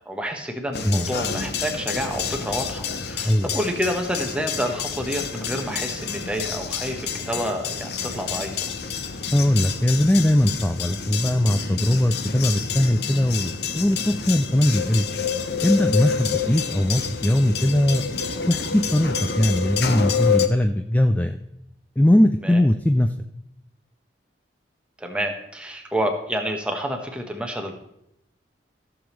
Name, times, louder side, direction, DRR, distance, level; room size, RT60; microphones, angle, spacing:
voice 1, 0.1-8.7 16.0-16.2 22.4-22.6 25.0-27.8, equal, 5° right, 3 dB, 1.2 m, -29 dB
sound 1, 0.7-20.5, left 6 dB, 65° left, 0.8 m, -28 dB
voice 2, 9.3-15.1 15.6-18.0 18.5-21.4 22.0-23.1, left 1 dB, 10° left, 7 dB, 0.4 m, -20 dB
15.0 x 7.0 x 3.2 m, 0.80 s
head